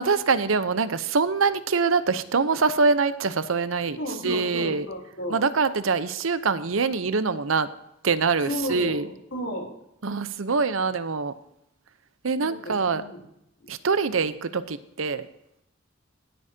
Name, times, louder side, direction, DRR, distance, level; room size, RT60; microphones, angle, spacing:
voice 1, 0.0-4.0 4.2-4.9 5.3-7.7 8.0-9.1 10.0-11.3 12.2-13.0 13.7-15.3, right 4 dB, 90° right, 13 dB, 0.8 m, -24 dB
voice 2, 4.0-5.4 8.4-9.7 12.4-13.3 14.3-14.4, left 1 dB, 70° left, 0 dB, 3.4 m, -33 dB
18.5 x 8.7 x 2.8 m, 0.80 s
head